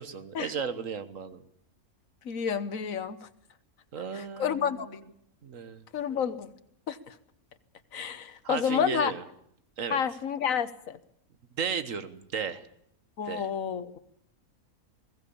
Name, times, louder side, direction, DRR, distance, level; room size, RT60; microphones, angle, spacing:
voice 1, 0.0-1.4 3.9-5.1 5.4-5.9 8.4-9.2 9.8-10.0 11.5-12.7 13.2-13.5, right 6 dB, 60° right, 12 dB, 1.7 m, -35 dB
voice 2, 2.2-3.3 4.1-5.0 5.9-6.5 6.9-7.1 7.9-9.1 9.9-11.0 13.2-14.0, left 7 dB, 65° left, 12 dB, 1.6 m, -30 dB
21.0 x 17.0 x 8.7 m, 0.72 s
omnidirectional pair, 1.6 m